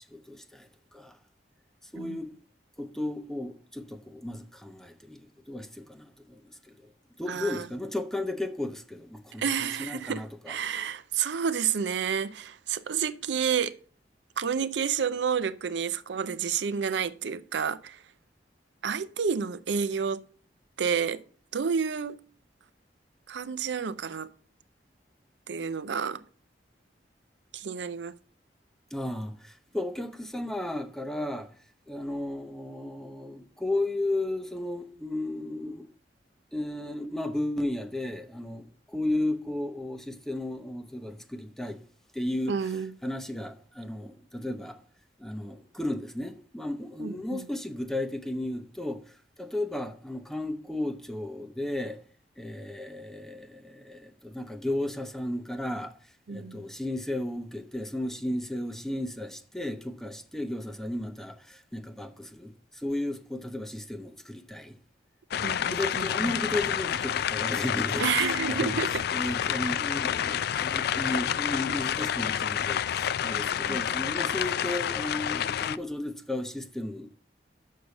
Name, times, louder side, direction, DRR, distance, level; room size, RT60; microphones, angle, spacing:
voice 1, 0.1-1.2 1.9-2.3 2.8-6.9 7.2-10.5 28.9-31.5 31.9-35.9 36.5-41.8 42.1-42.5 43.0-44.8 45.2-52.0 52.4-56.0 56.3-64.7 65.3-68.8 69.1-77.1, left 1 dB, ahead, 0.7 m, -34 dB
voice 2, 7.3-7.7 9.4-13.8 14.4-18.0 18.8-20.2 20.8-21.2 21.5-22.2 23.3-24.3 25.5-26.2 27.5-28.1 42.4-42.9 47.0-47.4 56.3-56.6 65.4-66.4 68.0-69.0 73.7-73.8 74.1-74.3, right 6 dB, 75° right, 0.5 m, -30 dB
sound 1, 65.3-75.8, left 9 dB, 60° left, 0.3 m, -29 dB
6.5 x 5.5 x 6.9 m
head